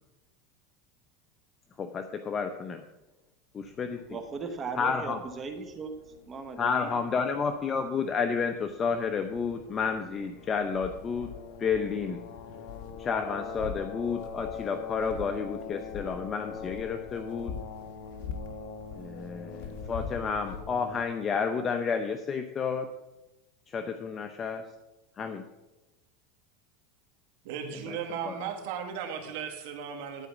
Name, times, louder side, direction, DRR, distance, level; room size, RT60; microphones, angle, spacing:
voice 1, 1.8-2.8 3.5-4.0 4.7-5.2 6.6-11.3 11.6-12.2 13.0-17.6 19.0-22.9 23.7-24.7 25.2-25.4 27.9-28.0 28.2-28.3, left 5 dB, 25° left, 7 dB, 0.7 m, -31 dB
sound 1, 3.6-21.0, left 6 dB, 60° left, 1.3 m, -42 dB
voice 2, 4.1-6.0 6.3-7.0, right 4 dB, 25° right, 5 dB, 1.1 m, -38 dB
voice 3, 27.4-30.3, right 7 dB, 70° right, 3 dB, 1.9 m, -36 dB
11.5 x 4.9 x 7.2 m, 1.0 s
supercardioid pair, 130°, 0 cm